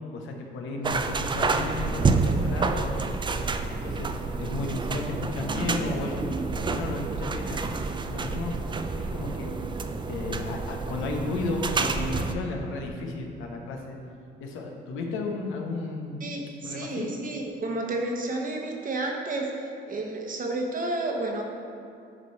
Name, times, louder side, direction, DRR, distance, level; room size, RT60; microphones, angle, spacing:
voice 1, 0.1-2.9 3.3-7.7 8.1-8.6 9.0-9.7 10.1-14.0 14.4-16.2 16.6-17.1, left 3 dB, 90° left, 1 dB, 0.9 m, -33 dB
sound 1, 0.8-12.4, right 4 dB, 25° right, 0.4 m, -29 dB
voice 2, 16.2-19.5 19.9-21.4, right 2 dB, 45° right, 1 dB, 1.0 m, -31 dB
9.8 x 3.3 x 4.5 m, 2.4 s
cardioid pair, 90°, 20 cm